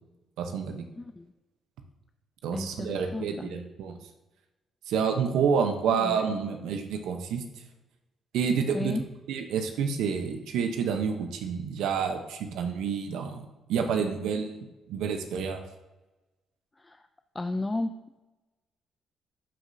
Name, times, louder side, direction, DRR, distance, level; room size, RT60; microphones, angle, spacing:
voice 1, 0.4-0.8 2.4-4.0 4.9-7.4 8.3-8.9 9.3-14.6 14.9-15.6, right 6 dB, 85° right, 5 dB, 0.8 m, -29 dB
voice 2, 1.0-1.3 2.5-3.5 5.9-6.2 8.7-9.0 16.8-17.0 17.3-18.2, left 2 dB, 20° left, 7 dB, 0.4 m, -33 dB
11.5 x 5.1 x 2.7 m, 1.1 s
cardioid pair, 90°, 0 cm